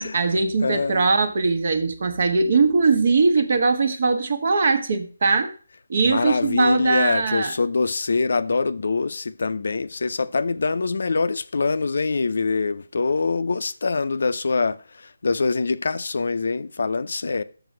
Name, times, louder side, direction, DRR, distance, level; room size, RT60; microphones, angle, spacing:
voice 1, 0.0-5.5 5.9-7.5, right 4 dB, 50° right, 1.2 m, -21 dB
voice 2, 0.6-1.1 6.0-17.4, left 4 dB, 60° left, 0.6 m, -24 dB
6.8 x 6.0 x 6.3 m
figure-of-eight pair, 155°, 0 cm